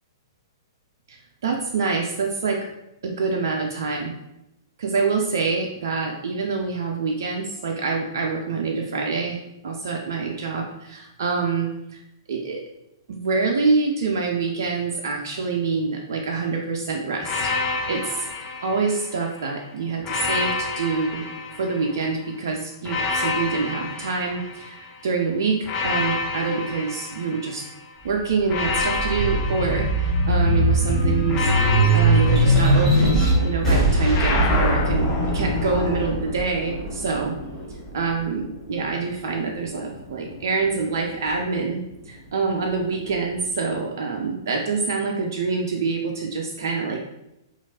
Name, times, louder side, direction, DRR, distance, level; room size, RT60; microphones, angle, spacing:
voice 1, 1.4-2.6 3.0-4.1 4.8-12.0 12.3-12.6 13.1-17.5 17.9-18.3 18.6-21.2 21.6-27.6 28.0-37.4 37.9-47.0, right 4 dB, 60° right, 1 dB, 0.4 m, -26 dB
sound 1, 17.2-19.4 20.0-22.2 22.8-25.0 25.6-27.8 28.5-30.6 31.3-33.5 34.1-36.2, left 4 dB, 30° left, 0.4 m, -28 dB
sound 2, 28.0-38.8 39.4-40.5, right 1 dB, 15° left, 1.1 m, -21 dB
2.9 x 2.4 x 2.7 m, 0.88 s
figure-of-eight pair, 110°, 2 cm